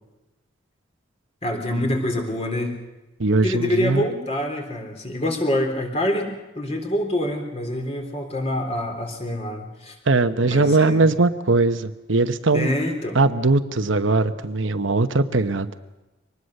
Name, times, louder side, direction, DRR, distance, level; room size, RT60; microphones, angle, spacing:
voice 1, 1.4-2.8 3.4-9.9 10.4-11.1 12.5-13.2, left 1 dB, 35° left, 3 dB, 3.5 m, -26 dB
voice 2, 3.2-4.1 10.1-12.7 13.1-15.7, right 3 dB, 85° right, 9 dB, 1.0 m, -20 dB
24.0 x 19.5 x 6.6 m, 1.1 s
head